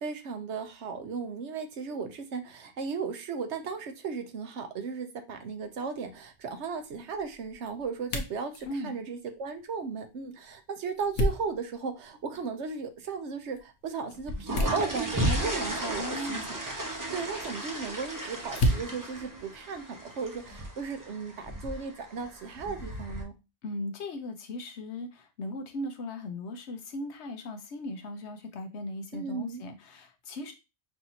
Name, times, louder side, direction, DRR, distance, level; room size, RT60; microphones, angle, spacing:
voice 1, 0.0-23.3 29.1-29.6, right 5 dB, 75° right, 1.0 m, -36 dB
sound 1, 5.6-20.5, left 1 dB, 90° left, 1.2 m, -37 dB
voice 2, 8.6-9.0 16.0-16.5 23.6-30.5, left 1 dB, 70° left, 1.0 m, -38 dB
sound 2, 14.2-23.2, right 1 dB, 20° right, 0.6 m, -35 dB
5.7 x 2.6 x 2.8 m
omnidirectional pair, 1.2 m